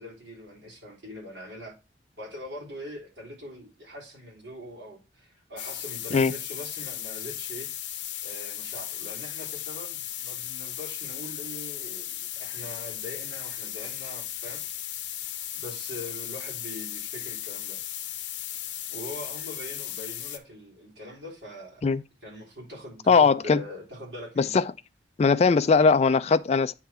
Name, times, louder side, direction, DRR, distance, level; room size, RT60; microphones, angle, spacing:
voice 1, 0.0-1.7 2.2-7.7 8.2-15.0 15.5-17.8 18.9-21.9 22.2-24.7, left 1 dB, 70° right, 3.8 m, -42 dB
sound 1, 5.6-20.4, left 12 dB, 75° left, 0.7 m, -36 dB
voice 2, 23.1-23.6 24.4-24.7 25.2-26.7, left 5 dB, 35° left, 0.3 m, -20 dB
9.0 x 3.8 x 4.3 m
head